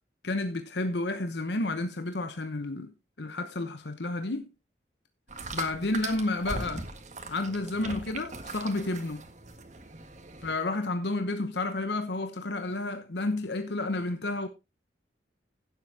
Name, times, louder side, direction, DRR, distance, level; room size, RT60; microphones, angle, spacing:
voice 1, 0.2-2.9 3.2-4.5 5.5-6.9 7.3-9.3 10.4-14.5, left 2 dB, 75° left, 1.0 m, -31 dB
sound 1, 5.3-10.5, right 3 dB, 40° right, 1.7 m, -40 dB
16.5 x 7.7 x 2.8 m
head